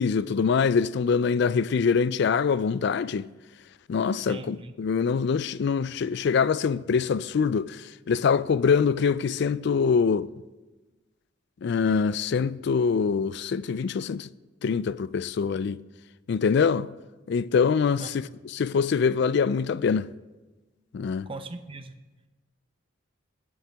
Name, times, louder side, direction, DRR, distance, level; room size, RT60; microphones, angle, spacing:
voice 1, 0.0-3.3 3.9-10.3 11.6-14.3 14.6-15.8 16.3-16.9 17.3-20.1 20.9-21.3, left 5 dB, 55° left, 0.3 m, -24 dB
voice 2, 4.3-4.7 18.0-18.3 21.3-21.9, right 2 dB, 25° right, 0.6 m, -39 dB
20.5 x 8.6 x 3.4 m
head